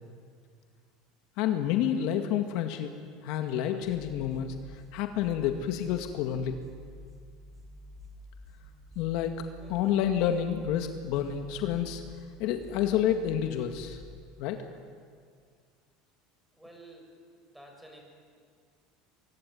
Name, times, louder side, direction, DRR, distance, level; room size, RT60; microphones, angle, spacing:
voice 1, 1.4-2.9 3.2-6.6 9.0-9.4 9.7-12.0 12.4-14.0 14.4-14.6, left 10 dB, 60° left, 6 dB, 2.0 m, -29 dB
sound 1, 3.8-14.0, equal, 25° right, 7.3 m, -50 dB
voice 2, 16.6-17.1 17.5-18.0, right 1 dB, 5° right, 1 dB, 6.8 m, -50 dB
24.5 x 23.0 x 9.6 m, 2.1 s
supercardioid pair, 135°, 0 cm